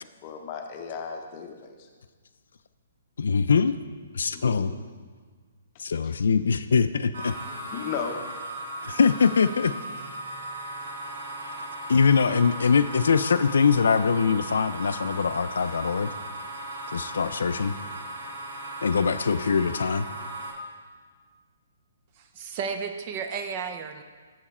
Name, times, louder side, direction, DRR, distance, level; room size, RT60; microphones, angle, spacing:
voice 1, 0.0-1.9 4.3-4.8 6.0-6.1 7.7-8.3, left 6 dB, 25° left, 3 dB, 0.7 m, -35 dB
voice 2, 3.2-3.7 4.1-4.7 5.8-7.3 8.8-9.7 11.9-16.1 16.9-17.7 18.8-20.1, left 5 dB, 80° left, 12 dB, 0.4 m, -22 dB
sound 1, 7.1-20.5, right 1 dB, 85° right, 2.2 m, -37 dB
voice 3, 22.2-24.0, right 6 dB, 25° right, 6 dB, 0.4 m, -33 dB
7.9 x 7.2 x 4.2 m, 1.5 s
hypercardioid pair, 175°, 0 cm